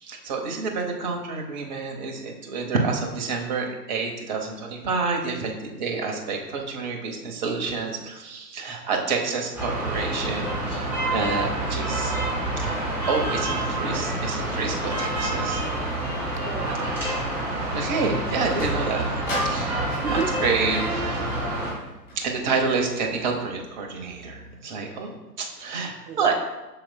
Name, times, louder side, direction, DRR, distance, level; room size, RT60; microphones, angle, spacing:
voice 1, 0.0-12.1 12.6-15.6 17.7-19.1 19.5-19.9 20.4-21.3 22.2-26.3, right 4 dB, 25° right, 2 dB, 0.8 m, -28 dB
sound 1, 9.5-21.7, right 1 dB, 5° right, 1.7 m, -27 dB
voice 2, 16.4-17.1 19.9-20.3 26.1-26.3, right 6 dB, 75° right, 6 dB, 0.8 m, -32 dB
Sliding door, 18.0-24.6, left 1 dB, 20° left, 1.9 m, -38 dB
7.5 x 6.1 x 2.2 m, 1.1 s
figure-of-eight pair, 135°, 50 cm